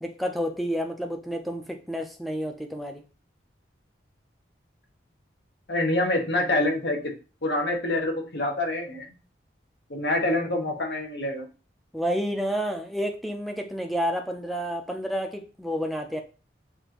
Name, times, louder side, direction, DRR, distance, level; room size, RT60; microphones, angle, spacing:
voice 1, 0.0-3.0 11.9-16.2, equal, ahead, 4 dB, 0.5 m, -30 dB
voice 2, 5.7-7.1 7.4-9.1 9.9-11.5, left 1 dB, 60° left, 2 dB, 1.1 m, -26 dB
6.9 x 2.6 x 2.9 m, 0.34 s
head